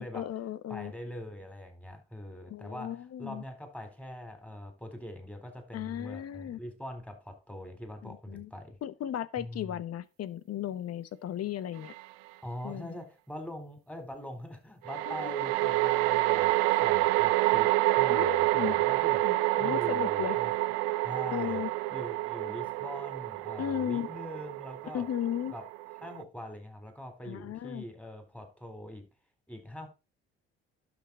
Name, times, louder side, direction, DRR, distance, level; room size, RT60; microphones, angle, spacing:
voice 1, 0.0-0.9 2.5-3.4 5.7-6.6 8.0-8.5 8.8-11.9 12.6-13.0 15.1-15.3 18.1-18.7 19.2-20.4 21.3-21.7 23.6-24.1 24.9-25.5 27.3-27.8, left 10 dB, 55° left, 0.9 m, -35 dB
voice 2, 0.7-8.8 9.4-9.8 12.4-20.5 21.0-21.6 21.9-25.1 25.5-25.7 26.0-29.1 29.5-29.9, left 1 dB, 5° left, 3.9 m, -43 dB
sound 1, 11.9-12.0 14.8-26.2, right 20 dB, 85° right, 0.5 m, -28 dB
12.0 x 6.2 x 4.2 m
hypercardioid pair, 55°, 30 cm